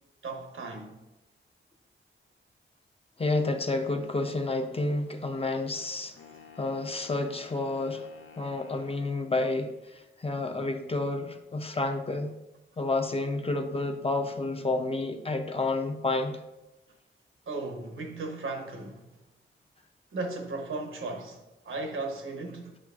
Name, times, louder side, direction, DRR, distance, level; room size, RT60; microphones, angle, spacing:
voice 1, 0.2-1.0 17.5-19.1 20.1-22.8, right 3 dB, 75° right, 0.9 m, -36 dB
voice 2, 3.2-6.1 6.6-8.1 8.4-12.3 12.8-16.4, left 2 dB, 30° left, 0.5 m, -30 dB
sound 1, 6.2-9.0, left 6 dB, 70° left, 0.6 m, -52 dB
7.6 x 5.1 x 2.4 m
cardioid pair, 65°, 21 cm